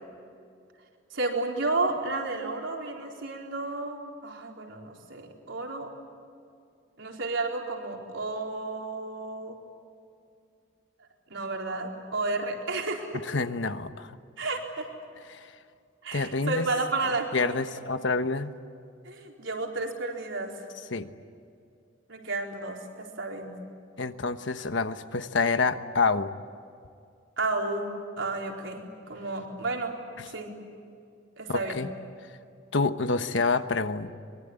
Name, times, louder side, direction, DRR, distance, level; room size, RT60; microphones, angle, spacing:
voice 1, 1.1-5.9 7.0-9.6 11.3-13.2 14.4-14.9 16.0-17.6 19.0-20.5 22.1-23.5 27.4-27.9 28.2-29.9 30.3-30.5 31.4-31.8, right 3 dB, 70° right, 0 dB, 4.4 m, -32 dB
voice 2, 13.3-14.1 15.3-15.5 16.1-16.7 17.3-18.5 20.9-21.1 24.0-26.3 30.2-30.3 31.5-31.9 32.7-34.2, left 3 dB, 65° left, 10 dB, 1.2 m, -27 dB
24.5 x 23.0 x 9.8 m, 2.4 s
head